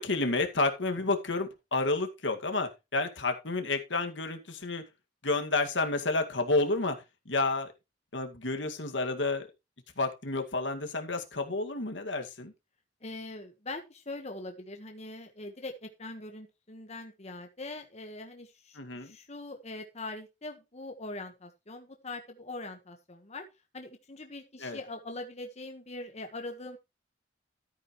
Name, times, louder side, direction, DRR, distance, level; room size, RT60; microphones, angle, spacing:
voice 1, 0.0-4.8 5.2-7.0 7.3-7.7 8.1-9.5 10.0-12.5 18.7-19.2 24.6-24.8, left 3 dB, 75° left, 5 dB, 2.1 m, -30 dB
voice 2, 13.0-23.5 23.7-26.8, left 2 dB, 35° left, 5 dB, 1.4 m, -42 dB
13.5 x 8.9 x 3.1 m, 0.25 s
head